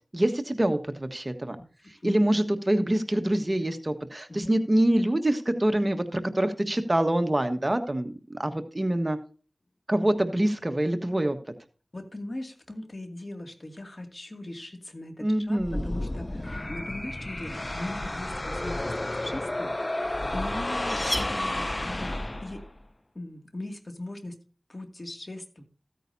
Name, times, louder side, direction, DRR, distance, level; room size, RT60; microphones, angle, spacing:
voice 1, 0.1-1.6 1.9-9.2 9.9-11.4 15.2-15.9, right 1 dB, 30° right, 7 dB, 1.4 m, -25 dB
voice 2, 11.9-22.7 23.1-24.4 24.7-25.6, left 1 dB, 45° left, 4 dB, 2.3 m, -39 dB
sound 1, 15.6-22.8, left 1 dB, 30° left, 0.4 m, -32 dB
sound 2, 20.0-22.1, equal, 15° left, 6.0 m, -35 dB
15.0 x 9.1 x 2.7 m, 0.37 s
wide cardioid pair, 45°, 0 cm